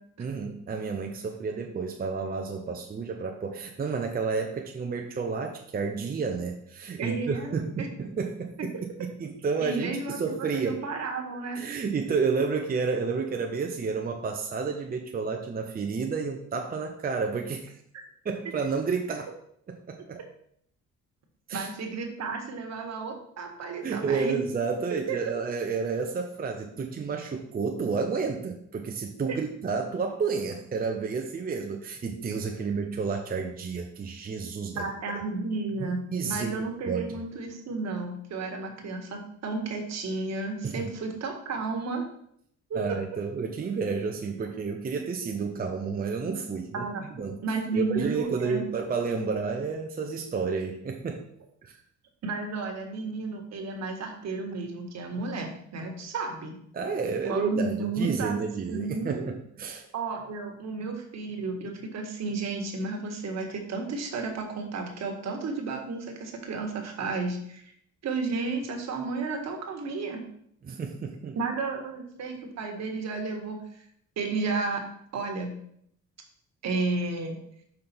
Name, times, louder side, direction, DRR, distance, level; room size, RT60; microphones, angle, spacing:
voice 1, 0.2-8.7 9.0-10.8 11.6-17.8 18.2-19.3 19.7-20.2 21.5-21.7 23.8-34.8 35.8-37.1 40.6-40.9 42.7-46.9 47.2-47.4 47.7-51.2 51.6-51.8 56.7-59.8 70.6-71.4, right 5 dB, 30° right, 3 dB, 0.7 m, -31 dB
voice 2, 7.0-7.9 8.6-8.7 9.6-11.6 20.1-20.2 21.5-24.4 25.1-25.4 29.3-29.4 34.8-42.0 42.7-42.8 46.7-47.0 47.4-48.7 52.2-56.6 57.2-58.4 58.7-59.3 59.9-67.6 68.0-70.2 71.3-73.6 74.2-74.9 75.1-75.5 76.6-77.4, right 3 dB, 60° right, 2 dB, 1.5 m, -32 dB
5.5 x 5.2 x 4.3 m, 0.68 s
cardioid pair, 90°, 30 cm